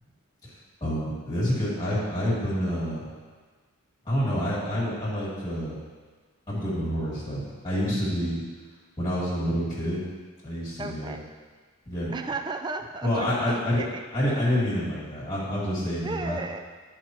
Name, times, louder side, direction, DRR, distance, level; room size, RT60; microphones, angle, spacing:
voice 1, 0.8-3.1 4.1-5.8 6.5-8.4 9.0-10.0 10.4-11.2 11.9-12.1 13.0-13.8 14.1-16.4, equal, 20° left, -7 dB, 2.2 m, -28 dB
voice 2, 10.8-11.2 12.1-14.4 16.0-16.6, right 3 dB, 20° right, 6 dB, 0.4 m, -34 dB
12.5 x 4.5 x 3.1 m, 1.5 s
head